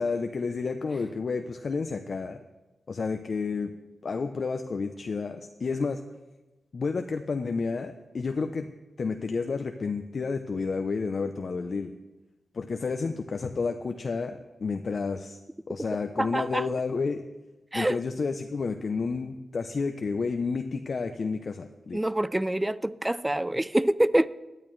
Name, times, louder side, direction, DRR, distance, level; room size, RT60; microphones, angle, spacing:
voice 1, 0.0-2.4 2.9-3.7 4.0-6.0 6.7-8.7 9.0-11.9 12.5-15.4 15.7-17.2 17.7-22.0, left 4 dB, 50° left, 0.5 m, -30 dB
voice 2, 16.2-16.7 17.7-18.0 21.9-24.3, right 1 dB, 10° right, 0.3 m, -26 dB
17.5 x 10.5 x 3.2 m
wide cardioid pair, 110°, 0 cm